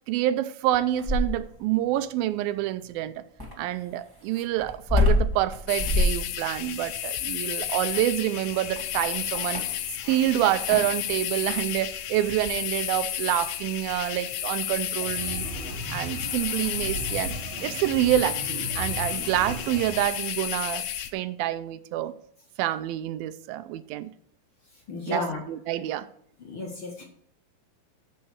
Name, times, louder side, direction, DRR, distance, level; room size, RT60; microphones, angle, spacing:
voice 1, 0.1-3.2 3.6-9.6 10.1-15.4 15.9-20.9 21.1-22.1 22.6-24.1 25.1-26.1, right 13 dB, 85° right, 2.3 m, -27 dB
sound 1, 0.7-1.6 3.4-10.2 10.6-11.0 12.3-12.6, left 2 dB, 25° right, 0.5 m, -27 dB
sound 2, 5.7-21.1, left 11 dB, 75° left, 2.0 m, -32 dB
sound 3, 15.0-20.0, right 2 dB, 55° right, 2.2 m, -36 dB
voice 2, 24.9-25.4 26.4-27.0, left 2 dB, 45° left, 1.9 m, -32 dB
14.5 x 5.4 x 4.7 m
omnidirectional pair, 4.2 m